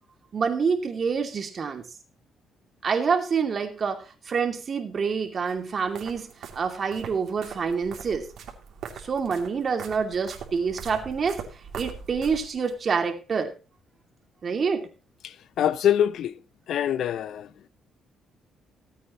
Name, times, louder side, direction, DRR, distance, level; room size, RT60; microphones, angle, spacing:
voice 1, 0.3-1.9 2.8-8.3 9.0-11.4 11.7-13.5 14.4-14.9, right 5 dB, 45° right, 2.6 m, -27 dB
sound 1, 5.5-12.8, right 7 dB, 70° right, 2.8 m, -42 dB
voice 2, 15.2-16.3 16.7-17.5, left 10 dB, 70° left, 0.7 m, -24 dB
18.5 x 8.6 x 3.0 m
cardioid pair, 90°, 0 cm